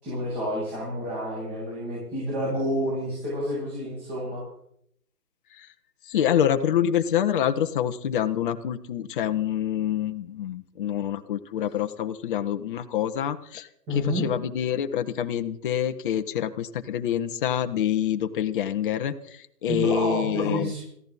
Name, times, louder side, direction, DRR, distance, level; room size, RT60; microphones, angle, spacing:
voice 1, 0.0-4.4 13.9-14.2 19.7-20.8, equal, 20° right, -7 dB, 8.0 m, -29 dB
voice 2, 6.1-13.7 14.1-20.7, left 10 dB, 30° left, 8 dB, 1.0 m, -26 dB
22.0 x 15.0 x 4.1 m, 0.71 s
figure-of-eight pair, 140°, 49 cm